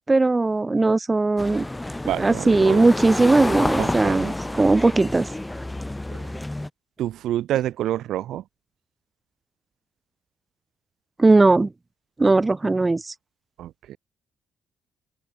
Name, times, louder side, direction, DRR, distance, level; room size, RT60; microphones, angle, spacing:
voice 1, 0.0-1.7 2.2-5.3 11.2-11.7 12.2-13.1, right 3 dB, 20° right, 1.0 m, -19 dB
sound 1, 1.4-6.7, left 1 dB, 10° left, 6.4 m, -29 dB
voice 2, 2.1-2.8 3.8-4.3 7.0-8.4 13.6-14.0, right 12 dB, 80° right, 0.9 m, -28 dB
open air
cardioid pair, 90°, 0 cm